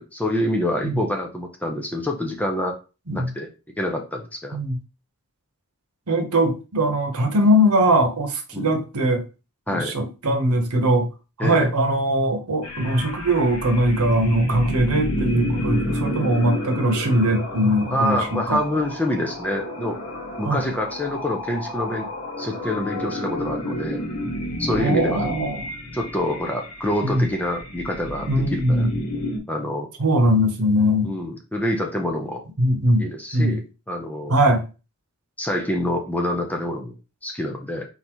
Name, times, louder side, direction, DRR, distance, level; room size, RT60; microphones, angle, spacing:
voice 1, 0.0-2.8 3.1-3.5 3.8-4.6 8.5-8.8 9.7-10.0 11.4-11.7 17.9-20.0 20.4-22.1 22.4-24.0 24.6-25.3 25.9-28.9 29.5-29.9 31.0-32.4 33.0-33.6 33.9-34.3 35.4-36.9 37.2-37.9, left 1 dB, 5° left, 0.7 m, -26 dB
voice 2, 6.1-9.2 9.7-11.1 11.4-18.6 20.4-20.6 24.8-25.7 27.0-27.3 28.3-28.9 30.0-31.2 32.6-33.6 34.3-34.6, equal, 85° right, 1.0 m, -21 dB
sound 1, 12.6-29.4, left 1 dB, 80° left, 1.1 m, -30 dB
4.0 x 3.9 x 3.0 m
head